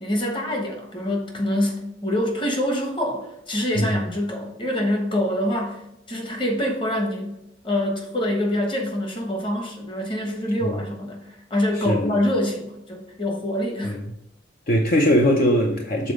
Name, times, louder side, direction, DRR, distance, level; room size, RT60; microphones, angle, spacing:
voice 1, 0.0-5.8 6.1-7.3 7.6-11.2 11.5-14.0, left 1 dB, 25° left, 1.1 m, -25 dB
voice 2, 14.7-16.1, equal, 45° left, 0.6 m, -20 dB
6.8 x 4.0 x 4.9 m
head